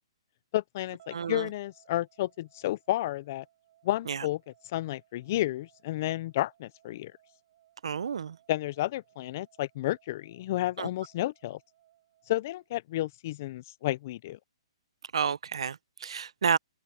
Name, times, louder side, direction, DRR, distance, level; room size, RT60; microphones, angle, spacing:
voice 1, 0.5-3.4 3.8-4.4 4.7-7.1 8.5-11.6 12.3-14.4, left 15 dB, 30° left, 0.4 m, -31 dB
sound 1, 1.0-13.1, right 13 dB, 35° right, 7.9 m, -65 dB
voice 2, 1.1-1.5 4.1-4.2 7.8-8.4 10.8-10.9 15.1-16.6, right 7 dB, 80° right, 0.5 m, -30 dB
hypercardioid pair, 170°, 3 cm